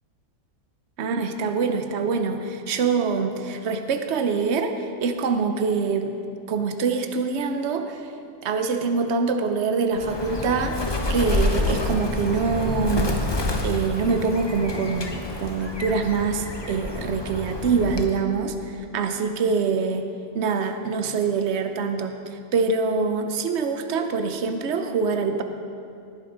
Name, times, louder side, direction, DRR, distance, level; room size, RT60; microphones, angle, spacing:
voice 1, 1.0-4.7 5.0-6.2 6.5-8.0 8.4-10.8 11.1-13.3 13.6-25.4, right 5 dB, 65° right, 7 dB, 0.7 m, -25 dB
Bird, 9.9-18.2, left 2 dB, 40° left, 0.3 m, -28 dB
19.0 x 9.5 x 3.9 m, 2.5 s
omnidirectional pair, 2.1 m